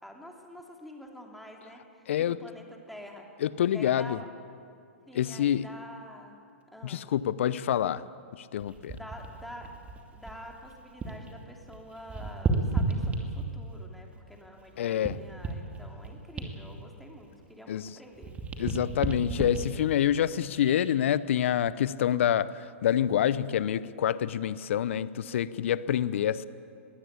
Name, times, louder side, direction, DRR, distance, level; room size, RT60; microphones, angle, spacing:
voice 1, 0.0-3.3 3.7-4.2 5.1-6.4 6.7-7.0 9.0-9.7 10.1-18.3 26.1-26.5, equal, ahead, 0 dB, 3.0 m, -47 dB
voice 2, 2.1-2.4 3.4-4.2 5.1-5.7 6.8-8.0 8.3-9.0 14.8-15.2 17.7-18.0 18.6-26.4, left 10 dB, 60° left, 17 dB, 0.8 m, -27 dB
sound 1, 8.6-11.3 11.6-13.7 14.3-17.8 18.1-20.9 21.5-21.7, right 3 dB, 20° right, 2.4 m, -34 dB
21.5 x 16.0 x 8.5 m, 2.4 s
hypercardioid pair, 120°, 7 cm